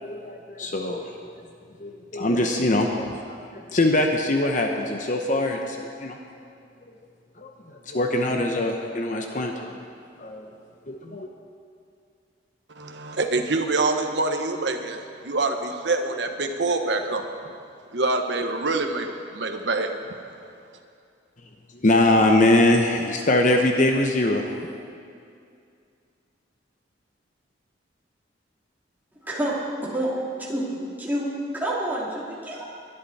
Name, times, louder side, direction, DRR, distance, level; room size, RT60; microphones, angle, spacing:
voice 1, 0.0-1.2 1.8-6.2 7.4-7.5 7.9-9.7 10.2-10.5 10.9-11.3 21.7-24.7, left 1 dB, 45° left, 3 dB, 0.9 m, -22 dB
voice 2, 12.7-17.2 17.9-19.9, right 3 dB, 70° right, 4 dB, 1.2 m, -25 dB
voice 3, 29.2-30.1 30.4-30.7 31.0-32.8, right 1 dB, 10° right, -6 dB, 3.1 m, -28 dB
21.5 x 11.5 x 4.3 m, 2.4 s
head